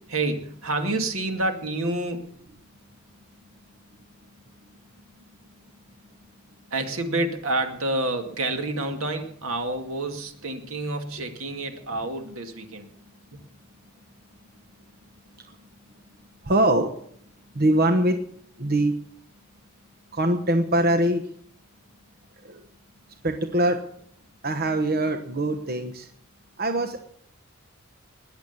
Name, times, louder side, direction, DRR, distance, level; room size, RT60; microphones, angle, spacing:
voice 1, 0.1-2.3 6.7-12.9, right 2 dB, 80° right, 5 dB, 2.2 m, -28 dB
voice 2, 16.4-16.9 17.5-18.2 18.6-18.9 20.1-21.2 22.4-22.6 23.2-23.8 24.4-26.1 26.6-27.0, right 1 dB, 45° right, 6 dB, 1.1 m, -22 dB
20.5 x 8.1 x 6.8 m, 0.65 s
head